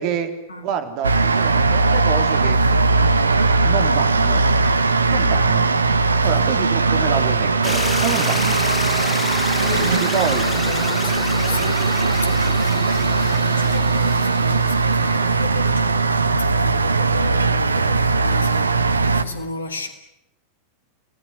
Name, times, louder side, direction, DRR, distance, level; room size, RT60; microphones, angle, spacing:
voice 1, 0.0-0.3 0.6-2.6 3.6-4.4 5.1-5.7 6.2-8.6 9.6-10.4, right 8 dB, 45° right, 3.4 m, -27 dB
sound 1, 1.0-19.2, right 3 dB, 75° right, 1.2 m, -19 dB
sound 2, 7.6-15.6, left 4 dB, 15° left, 1.2 m, -30 dB
voice 2, 9.2-19.9, left 2 dB, 75° left, 3.9 m, -33 dB
29.0 x 19.0 x 9.7 m
figure-of-eight pair, 90°, 0 cm